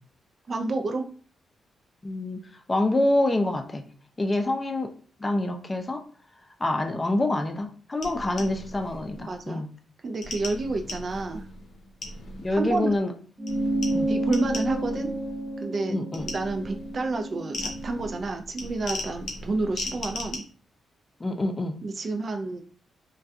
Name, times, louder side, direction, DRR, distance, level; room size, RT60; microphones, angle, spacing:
voice 1, 0.5-1.0 8.3-8.4 9.2-9.6 10.0-11.4 12.5-12.9 14.1-15.1 15.6-16.0 16.3-20.4 21.8-22.6, right 3 dB, 50° right, 5 dB, 0.4 m, -29 dB
voice 2, 2.0-2.4 2.7-3.9 4.2-4.9 5.2-6.0 6.6-9.7 12.4-13.1 13.9-14.1 15.9-16.3 21.2-21.8, left 2 dB, 30° left, 5 dB, 0.4 m, -26 dB
sound 1, 8.0-9.4 10.2-13.1 13.5-15.6 16.1-20.4, left 2 dB, 75° left, 0.6 m, -38 dB
sound 2, 13.4-18.2, right 1 dB, 30° right, 0.8 m, -30 dB
2.3 x 2.2 x 2.7 m, 0.41 s
supercardioid pair, 55°, 0 cm